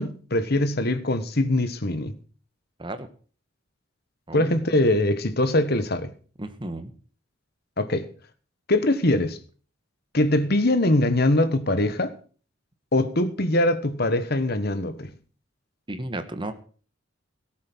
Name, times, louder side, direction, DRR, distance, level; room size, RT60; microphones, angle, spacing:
voice 1, 0.0-2.1 4.3-6.1 7.8-8.1 8.7-9.4 10.1-12.1 12.9-15.1, left 1 dB, 50° left, 1.3 m, -22 dB
voice 2, 4.3-4.6 6.4-6.9 15.9-16.5, right 1 dB, 25° right, 1.3 m, -33 dB
18.0 x 7.4 x 6.2 m
head